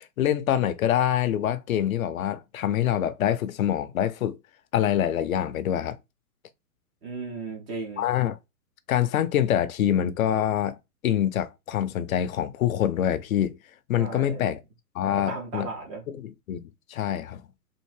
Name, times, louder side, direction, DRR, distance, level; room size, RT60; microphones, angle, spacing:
voice 1, 0.0-4.4 4.7-6.0 8.0-8.4 8.9-13.6 13.9-14.6 14.9-15.7 16.1-17.4, left 10 dB, 60° left, 0.6 m, -25 dB
voice 2, 7.0-8.1 13.9-14.5 15.0-16.0, right 3 dB, 10° right, 0.4 m, -36 dB
3.6 x 2.6 x 3.2 m
hypercardioid pair, 130°, 46 cm